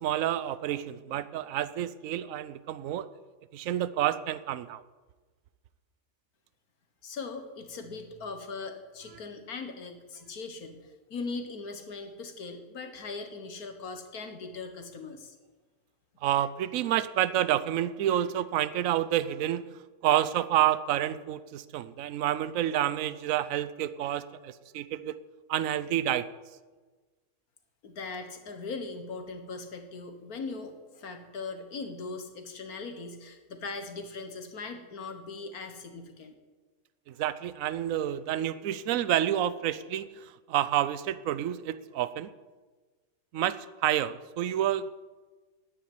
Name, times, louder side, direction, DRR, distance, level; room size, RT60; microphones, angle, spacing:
voice 1, 0.0-3.1 3.5-4.8 16.2-19.6 20.0-25.2 25.5-26.3 37.1-42.3 43.3-44.9, right 12 dB, 70° right, 15 dB, 1.0 m, -29 dB
voice 2, 7.0-10.8 11.1-15.4 27.8-36.3, left 4 dB, 75° left, 7 dB, 2.0 m, -40 dB
10.5 x 9.8 x 9.4 m, 1.3 s
omnidirectional pair, 1.6 m